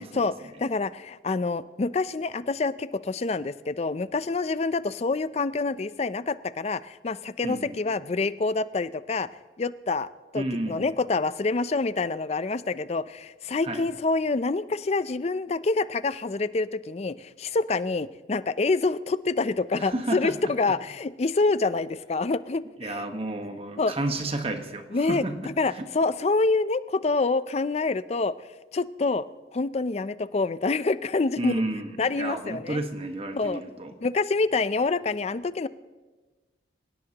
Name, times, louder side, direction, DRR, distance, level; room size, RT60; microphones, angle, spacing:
voice 1, 0.0-9.3 9.6-23.0 23.8-23.9 24.9-28.4 28.7-29.2 29.5-31.5 32.0-32.8 33.3-33.6 34.0-35.7, left 3 dB, 35° left, 15 dB, 0.4 m, -27 dB
voice 2, 7.4-7.9 10.3-10.9 13.6-13.9 19.7-20.5 22.8-25.9 31.4-33.9, right 2 dB, 35° right, 6 dB, 1.2 m, -32 dB
27.0 x 17.5 x 2.9 m, 1.3 s
head